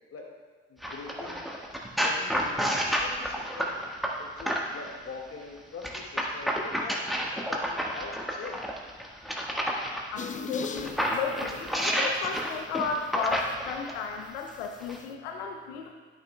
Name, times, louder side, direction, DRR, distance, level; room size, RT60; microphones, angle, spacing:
voice 1, 0.7-1.4 2.0-3.7 4.2-7.0 7.5-8.6, left 4 dB, 45° left, 0 dB, 1.8 m, -43 dB
sound 1, 0.8-4.9 5.8-10.0 10.6-14.0 14.8-15.0, equal, ahead, 1.3 m, -30 dB
voice 2, 10.1-15.9, left 5 dB, 75° left, 3 dB, 0.6 m, -34 dB
sound 2, 10.2-11.9 12.4-12.5 14.5-15.0, left 6 dB, 25° left, 0.4 m, -38 dB
12.0 x 6.1 x 2.2 m, 1.4 s
figure-of-eight pair, 40°, 32 cm